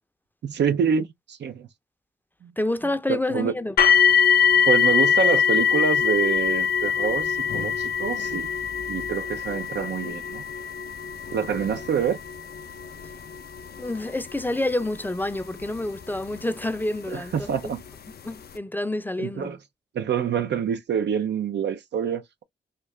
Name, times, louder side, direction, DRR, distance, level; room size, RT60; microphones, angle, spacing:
voice 1, 0.4-1.7 2.4-2.5 3.1-3.5 4.6-8.5 8.9-10.4 11.3-12.2 17.1-17.8 19.2-19.6 19.9-22.4, right 7 dB, 75° right, 0.5 m, -26 dB
voice 2, 2.6-3.7 13.8-17.5 18.2-19.5, left 1 dB, 10° left, 0.5 m, -28 dB
sound 1, 3.8-16.7 17.5-17.6 18.2-18.3, left 7 dB, 60° left, 0.4 m, -23 dB
2.7 x 2.4 x 3.1 m
cardioid pair, 50°, 18 cm